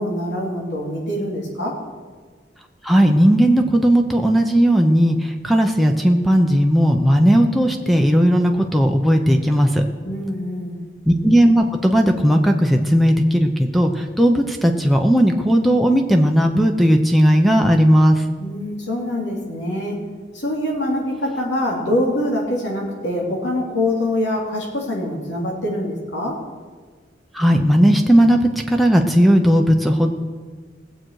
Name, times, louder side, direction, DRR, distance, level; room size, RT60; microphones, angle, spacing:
voice 1, 0.0-1.8 10.0-10.8 18.4-20.0 20.3-26.4, left 1 dB, 90° left, -2 dB, 2.9 m, -24 dB
voice 2, 2.8-9.8 11.1-18.2 27.3-30.1, equal, ahead, 2 dB, 0.7 m, -16 dB
19.0 x 7.7 x 4.7 m, 1.5 s
head